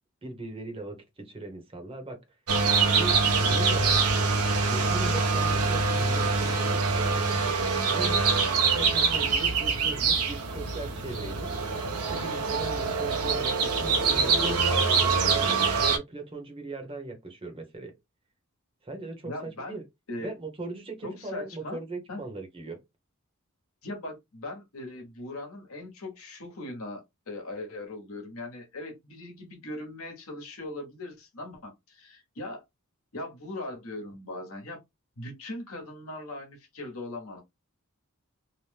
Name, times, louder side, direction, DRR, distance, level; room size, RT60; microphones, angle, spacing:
voice 1, 0.2-2.4 3.0-4.0 4.7-7.0 7.9-17.9 18.8-19.8 20.2-22.8, right 2 dB, 25° right, 0.8 m, -39 dB
sound 1, 2.5-16.0, right 4 dB, 85° right, 0.7 m, -25 dB
voice 2, 19.2-19.8 20.1-20.3 21.0-21.8 22.1-22.2 23.8-32.6 33.1-34.8 35.2-37.4, left 2 dB, 70° left, 1.0 m, -39 dB
2.8 x 2.1 x 3.2 m
head